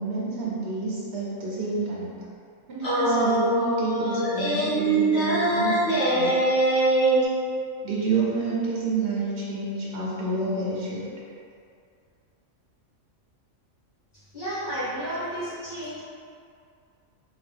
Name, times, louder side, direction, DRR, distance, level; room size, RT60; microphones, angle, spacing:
voice 1, 0.0-2.1 2.7-6.4 7.8-11.1, right 3 dB, 50° right, -7 dB, 1.1 m, -29 dB
sound 1, 2.8-7.3, right 1 dB, 55° left, 1.6 m, -23 dB
voice 2, 14.3-16.0, equal, 40° left, -13 dB, 1.4 m, -32 dB
3.8 x 2.6 x 3.4 m, 2.3 s
omnidirectional pair, 1.4 m